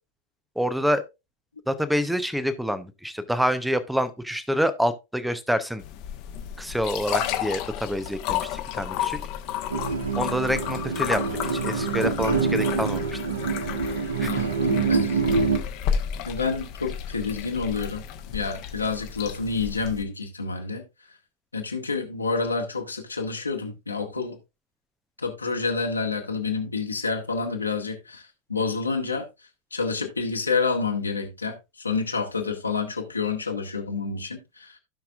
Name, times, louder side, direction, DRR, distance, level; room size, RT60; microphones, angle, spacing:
voice 1, 0.6-1.0 1.7-5.8 6.6-9.2 10.2-13.2 14.2-14.5, equal, ahead, 0.8 m, -27 dB
sound 1, 5.8-20.0, left 9 dB, 40° left, 1.1 m, -32 dB
sound 2, 9.7-15.6, right 4 dB, 75° right, 1.5 m, -25 dB
voice 2, 14.2-15.2 16.3-18.0 18.3-20.8 21.5-24.4 25.2-29.3 29.7-34.8, left 4 dB, 80° left, 1.8 m, -28 dB
15.5 x 5.9 x 2.4 m
figure-of-eight pair, 90°, 0 cm